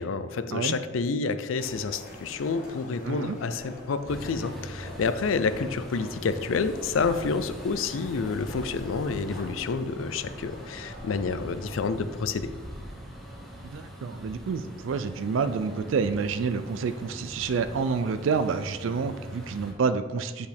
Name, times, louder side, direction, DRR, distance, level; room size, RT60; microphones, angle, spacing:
voice 1, 0.0-12.5, left 4 dB, 85° left, 12 dB, 0.4 m, -29 dB
sound 1, 1.6-12.0, left 1 dB, 45° left, 1.6 m, -44 dB
voice 2, 3.0-3.4 13.7-20.5, right 5 dB, 75° right, 10 dB, 0.4 m, -28 dB
sound 2, 4.1-19.7, equal, ahead, 1.0 m, -42 dB
8.2 x 5.3 x 3.4 m, 1.5 s
head